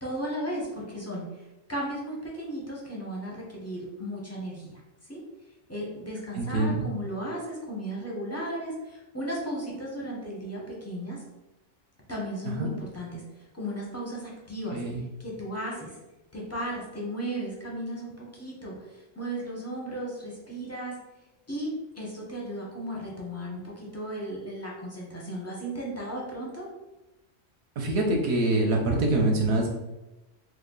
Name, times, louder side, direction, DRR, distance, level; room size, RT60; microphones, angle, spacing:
voice 1, 0.0-4.8 5.1-5.2 5.7-11.2 12.1-16.0 16.3-20.9 21.5-26.7, right 1 dB, 20° left, -4 dB, 0.5 m, -35 dB
voice 2, 6.3-6.9 12.4-12.7 14.7-15.0 27.8-29.7, right 2 dB, 70° right, 0 dB, 0.8 m, -25 dB
3.2 x 2.1 x 3.7 m, 1.0 s
omnidirectional pair, 1.2 m